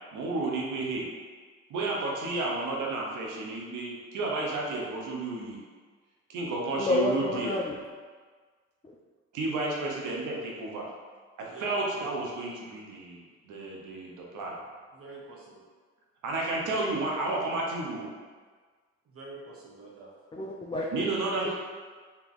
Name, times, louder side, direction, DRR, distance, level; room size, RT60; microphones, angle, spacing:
voice 1, 0.1-1.0 1.7-5.6 6.3-7.6 9.3-10.9 11.6-14.6 16.2-18.1 20.9-21.5, right 2 dB, 85° right, -2 dB, 1.0 m, -32 dB
voice 2, 6.8-7.8 20.3-20.9 21.4-21.5, left 2 dB, 15° left, -3 dB, 0.5 m, -28 dB
voice 3, 14.9-15.6 19.1-20.1, right 3 dB, 50° right, -3 dB, 1.0 m, -46 dB
4.1 x 2.9 x 3.6 m, 1.5 s
cardioid pair, 90°, 30 cm